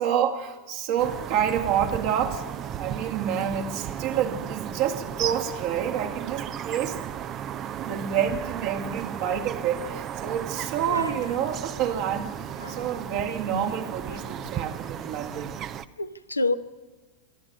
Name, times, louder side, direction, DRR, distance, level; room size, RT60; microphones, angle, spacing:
voice 1, 0.0-2.4 2.8-7.0 7.8-12.3 12.7-15.6, right 9 dB, 45° right, 2.4 m, -28 dB
sound 1, 1.0-15.9, right 9 dB, 30° right, 0.8 m, -35 dB
voice 2, 16.0-16.5, left 2 dB, 85° left, 0.9 m, -28 dB
25.5 x 12.5 x 9.4 m
figure-of-eight pair, 90°, 0 cm